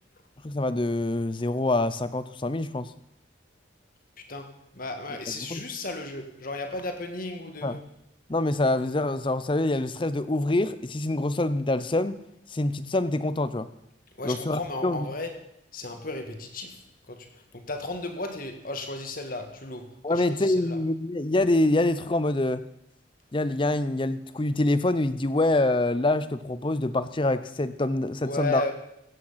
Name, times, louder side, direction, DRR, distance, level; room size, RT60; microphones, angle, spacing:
voice 1, 0.4-2.9 5.5-5.6 7.6-7.8 8.3-12.2 12.5-13.7 14.2-15.1 20.0-22.6 23.3-28.6, left 2 dB, 25° left, 0.6 m, -25 dB
voice 2, 4.3-7.8 14.2-16.8 17.1-20.8 28.2-28.7, left 2 dB, 45° left, 1.7 m, -35 dB
16.0 x 9.1 x 5.7 m
head